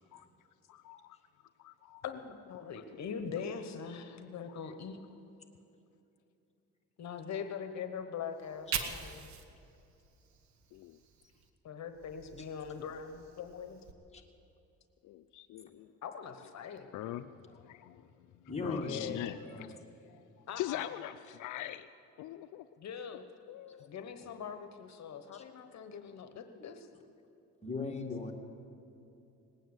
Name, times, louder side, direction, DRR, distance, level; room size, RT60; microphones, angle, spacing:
voice 1, 0.7-1.2 1.6-2.0 2.5-2.8 4.5-4.6 10.7-11.0 15.0-15.9 16.9-18.1 18.3-19.8 20.1-20.3 20.6-21.9 22.2-22.7 23.5-23.9, left 13 dB, 80° left, 10 dB, 0.5 m, -43 dB
voice 2, 2.0-5.0 7.0-9.3 11.6-13.8 16.0-16.8 18.8-19.2 20.5-20.9 22.8-23.2 23.8-26.9, left 7 dB, 65° left, 8 dB, 1.1 m, -42 dB
Fire, 8.3-11.5 11.9-13.9, right 7 dB, 65° right, 1.3 m, -44 dB
voice 3, 18.5-19.2 19.5-19.7 25.3-25.4 27.6-28.3, left 3 dB, 20° left, 1 dB, 2.1 m, -38 dB
19.5 x 9.2 x 8.0 m, 2.8 s
cardioid pair, 90°, 30 cm